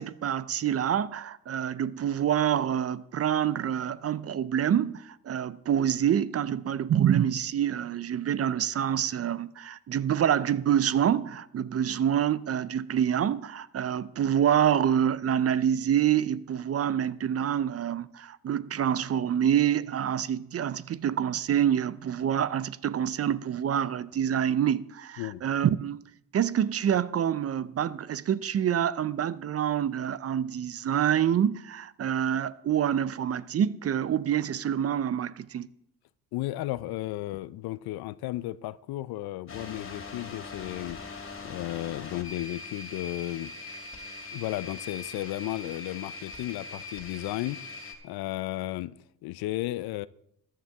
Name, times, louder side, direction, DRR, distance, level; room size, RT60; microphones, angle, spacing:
voice 1, 0.0-26.0 26.3-35.7, right 9 dB, 40° right, 0.5 m, -27 dB
voice 2, 36.3-41.0 41.4-43.5 44.3-47.6 48.0-50.1, left 16 dB, 70° left, 0.5 m, -34 dB
sound 1, 39.5-47.9, left 3 dB, 35° left, 2.4 m, -41 dB
13.5 x 11.0 x 3.5 m
supercardioid pair, 70°, 39 cm